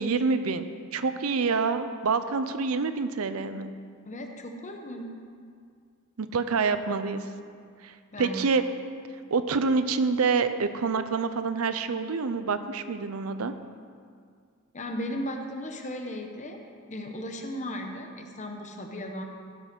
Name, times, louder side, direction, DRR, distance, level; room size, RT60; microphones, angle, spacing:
voice 1, 0.0-3.7 6.2-7.2 7.8-8.6 9.3-13.5, right 4 dB, 80° right, 11 dB, 0.6 m, -27 dB
voice 2, 4.1-5.1 8.1-8.4 14.7-19.2, equal, 35° left, 3 dB, 1.0 m, -36 dB
15.0 x 5.6 x 6.1 m, 2.1 s
head